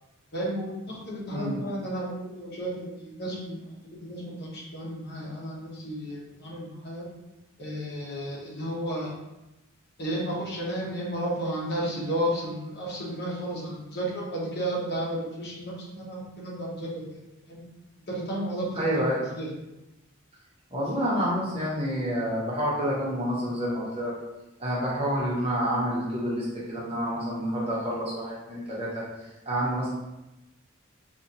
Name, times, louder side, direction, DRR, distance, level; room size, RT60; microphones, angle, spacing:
voice 1, 0.3-3.6 4.0-7.0 7.6-9.1 10.0-17.2 17.5-17.6 18.1-18.9 19.3-19.5, right 1 dB, 50° left, -4 dB, 1.0 m, -32 dB
voice 2, 1.3-1.6 18.7-19.2 20.7-24.1 24.6-29.9, equal, 30° right, -7 dB, 1.0 m, -28 dB
4.0 x 2.5 x 2.9 m, 0.95 s
head